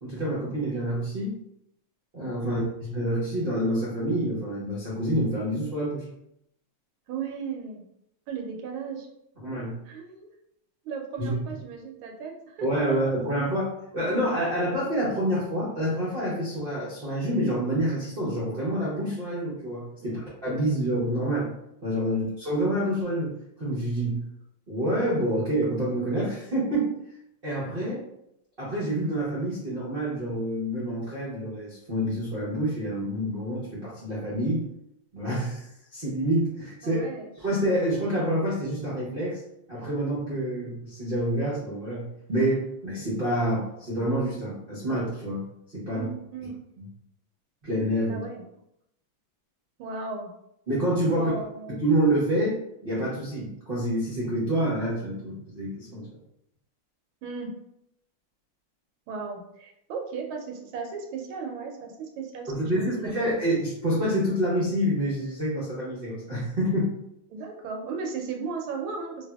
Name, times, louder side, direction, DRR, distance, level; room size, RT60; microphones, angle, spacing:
voice 1, 0.0-1.4 2.1-6.1 9.4-9.7 11.2-11.3 12.6-21.5 21.8-23.3 23.6-24.3 24.7-26.9 27.4-28.0 28.6-34.6 35.1-37.0 37.4-39.4 39.7-45.4 45.7-46.0 46.8-46.9 47.6-48.2 50.7-51.3 51.8-56.1 62.5-66.9, right 1 dB, 65° right, -8 dB, 0.5 m, -27 dB
voice 2, 7.1-7.8 8.3-9.1 9.8-10.3 10.8-12.7 13.2-13.3 14.0-14.5 20.0-20.2 22.1-22.3 36.8-37.3 45.9-46.7 48.1-48.4 49.8-50.3 51.1-51.7 57.2-57.5 59.1-63.4 67.3-69.3, right 5 dB, 85° right, 2 dB, 1.4 m, -36 dB
3.3 x 2.4 x 2.3 m, 0.78 s
omnidirectional pair, 2.3 m